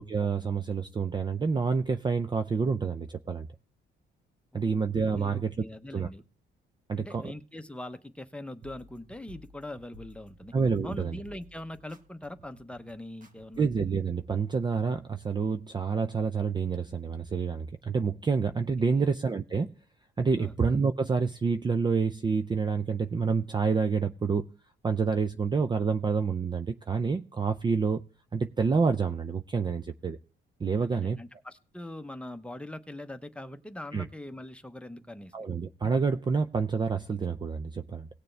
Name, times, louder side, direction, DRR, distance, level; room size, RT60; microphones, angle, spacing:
voice 1, 0.0-3.5 4.5-5.6 5.9-6.1 6.9-7.3 10.5-11.2 13.6-19.7 20.2-24.5 24.8-28.0 28.3-30.2 30.6-31.2 33.9-34.1 35.3-38.1, right 5 dB, 20° right, 0.4 m, -28 dB
voice 2, 4.5-4.8 5.1-6.2 7.0-10.5 10.8-13.7 18.8-19.1 20.4-20.5 30.8-35.3, left 1 dB, 5° left, 0.8 m, -42 dB
sound 1, 8.6-13.9, left 1 dB, 40° right, 1.6 m, -54 dB
18.0 x 6.7 x 3.3 m
cardioid pair, 90°, 20 cm